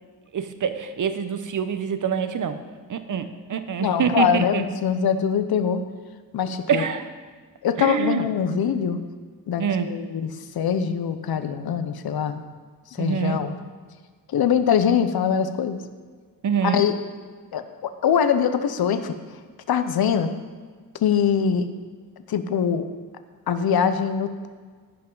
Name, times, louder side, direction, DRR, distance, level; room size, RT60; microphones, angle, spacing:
voice 1, 0.3-2.6 2.9-4.6 6.7-7.0 7.8-8.3 9.6-9.9 13.0-13.4 16.4-16.8, right 7 dB, 55° right, 10 dB, 0.8 m, -25 dB
voice 2, 3.8-5.8 6.3-6.8 7.6-9.0 9.5-12.4 12.9-13.6 14.3-15.8 16.6-16.9 17.5-19.1 19.7-20.3 21.0-21.7 22.3-22.9 23.5-24.5, left 7 dB, 75° left, 10 dB, 0.8 m, -23 dB
16.0 x 5.8 x 3.9 m, 1.5 s
cardioid pair, 85°, 37 cm